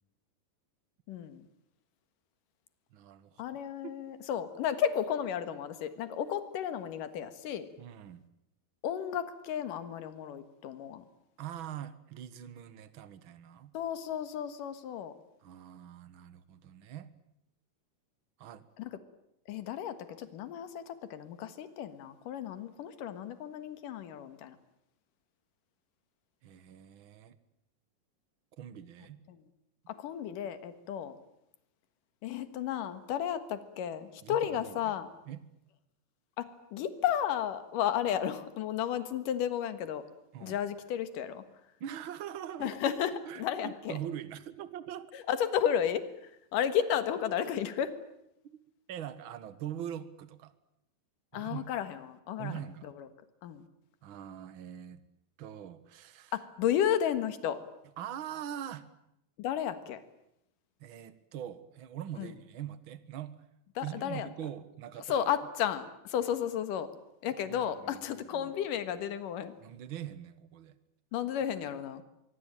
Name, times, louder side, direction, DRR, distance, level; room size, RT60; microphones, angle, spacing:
voice 1, 1.1-1.5 3.4-7.7 8.8-11.0 13.7-15.1 18.8-18.9 19.5-24.6 29.3-29.4 29.9-31.2 32.2-35.1 36.4-40.0 40.4-41.4 42.6-44.0 45.1-47.9 51.3-53.1 53.4-53.7 56.3-57.6 59.4-60.0 62.2-62.3 63.8-64.3 65.1-66.9 67.2-69.5 71.1-72.0, left 9 dB, 80° left, 11 dB, 3.1 m, -33 dB
voice 2, 2.9-3.4 3.8-4.0 7.8-8.2 11.4-13.7 15.4-17.1 18.4-18.7 26.4-27.4 28.6-29.2 34.2-34.9 35.3-35.4 40.3-40.6 41.8-42.7 43.2-45.1 48.9-50.5 51.3-51.7 52.4-52.9 54.0-55.0 55.4-56.3 58.0-58.8 60.8-63.4 63.8-65.3 67.5-68.5 69.6-70.8, right 10 dB, 55° right, 14 dB, 1.6 m, -43 dB
24.0 x 24.0 x 9.0 m, 0.81 s
omnidirectional pair, 3.8 m